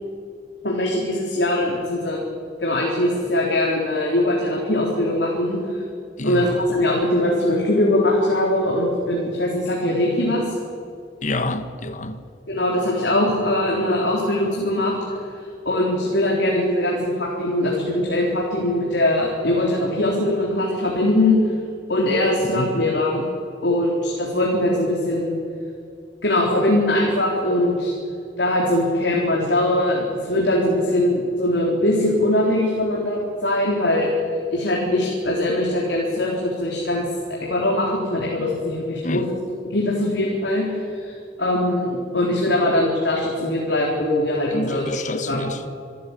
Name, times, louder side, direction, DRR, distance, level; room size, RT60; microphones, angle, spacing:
voice 1, 0.6-2.2 2.6-5.8 6.2-10.4 12.5-15.0 15.7-21.4 21.9-23.2 23.6-25.4 26.2-27.9 28.4-34.1 34.5-37.0 37.3-39.3 39.7-44.8 45.3-45.5, left 1 dB, 80° left, 3.9 m, -21 dB
voice 2, 6.2-6.6 11.2-12.2 22.4-22.9 39.0-39.3 44.5-45.7, left 2 dB, 45° left, 1.4 m, -28 dB
26.5 x 14.0 x 8.5 m
head